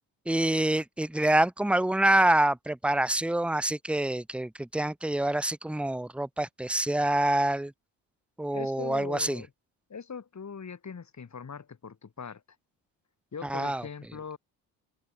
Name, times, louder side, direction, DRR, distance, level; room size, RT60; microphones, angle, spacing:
voice 1, 0.3-7.7 8.4-9.4 13.4-13.8, right 1 dB, ahead, 1.3 m, -26 dB
voice 2, 8.5-9.5 9.9-12.4 13.3-14.4, left 6 dB, 35° left, 5.6 m, -41 dB
hypercardioid pair, 50°, 48 cm